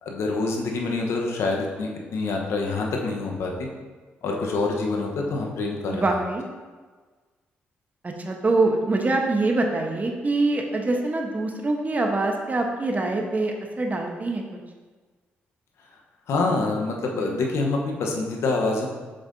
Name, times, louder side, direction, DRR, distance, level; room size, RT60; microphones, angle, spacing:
voice 1, 0.0-3.7 4.2-6.0 16.3-18.9, left 3 dB, 70° left, 1 dB, 1.0 m, -26 dB
voice 2, 5.9-6.5 8.0-14.4, right 2 dB, 35° right, 2 dB, 1.0 m, -24 dB
7.0 x 5.2 x 2.7 m, 1.4 s
hypercardioid pair, 50°, 5 cm